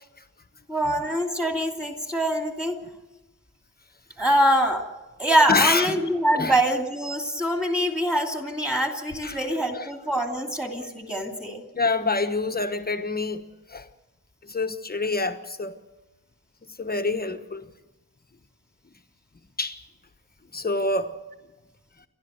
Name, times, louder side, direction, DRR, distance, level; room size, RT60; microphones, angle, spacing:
voice 1, 0.7-2.8 4.2-4.8 5.2-11.6, right 1 dB, 5° right, 2.7 m, -24 dB
voice 2, 5.5-6.0 6.3-6.6 9.2-9.9 11.7-13.4 13.7-13.9 14.4-15.8 16.8-17.7 19.6-19.8 20.5-21.2, left 3 dB, 25° left, 1.2 m, -26 dB
29.5 x 12.5 x 8.0 m
wide cardioid pair, 180°, 37 cm